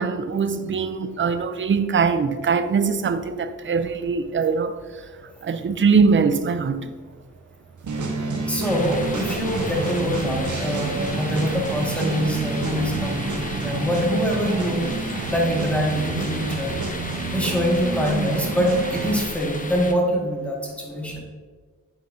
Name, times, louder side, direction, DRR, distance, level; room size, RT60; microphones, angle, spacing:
voice 1, 0.0-4.8 5.4-6.9, right 5 dB, 40° right, 0.5 m, -22 dB
sound 1, 7.8-19.2, right 3 dB, 65° right, 1.1 m, -28 dB
voice 2, 8.5-16.8 17.3-21.2, equal, 5° left, 1.8 m, -24 dB
sound 2, 8.6-19.9, left 2 dB, 25° left, 0.8 m, -35 dB
8.4 x 4.5 x 2.7 m
cardioid pair, 55°, 32 cm